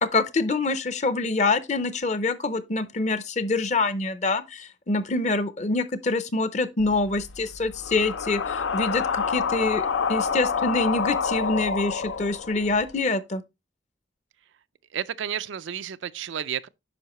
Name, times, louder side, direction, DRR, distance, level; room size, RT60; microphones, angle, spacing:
voice 1, 0.0-13.4, left 3 dB, 40° left, 0.6 m, -26 dB
sound 1, 6.8-12.9, left 6 dB, 90° left, 0.6 m, -28 dB
voice 2, 14.9-16.7, right 9 dB, 85° right, 0.4 m, -31 dB
9.3 x 5.6 x 3.0 m
head